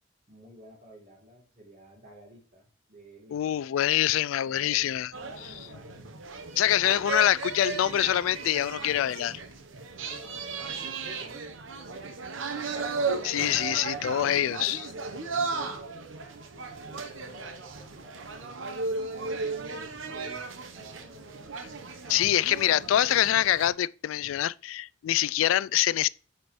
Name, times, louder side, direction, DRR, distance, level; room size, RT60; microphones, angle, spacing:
voice 1, 0.3-3.5 4.4-6.2 6.7-7.0 10.0-12.9 14.2-14.4 15.0-15.8 16.8-21.7 22.2-23.2, right 1 dB, 40° right, 3.0 m, -52 dB
voice 2, 3.3-5.1 5.4-5.5 6.6-9.4 13.2-14.9 22.1-26.1, left 12 dB, 90° left, 0.3 m, -25 dB
sound 1, 5.1-23.7, right 4 dB, 80° right, 0.9 m, -36 dB
9.5 x 4.4 x 3.1 m
head